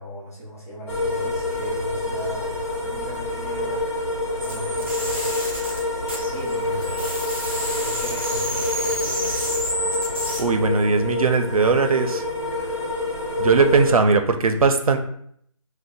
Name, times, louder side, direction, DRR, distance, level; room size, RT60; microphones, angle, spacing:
voice 1, 0.0-5.4 6.3-7.4 7.8-9.5, equal, 25° left, -7 dB, 0.9 m, -37 dB
sound 1, 0.9-13.9, left 2 dB, 50° left, 0.9 m, -27 dB
sound 2, 4.4-6.6 6.8-10.4, equal, 20° right, 0.5 m, -30 dB
voice 2, 10.4-12.2 13.4-15.0, right 4 dB, 90° right, 7 dB, 0.5 m, -19 dB
2.6 x 2.1 x 3.9 m, 0.67 s
figure-of-eight pair, 175°, 18 cm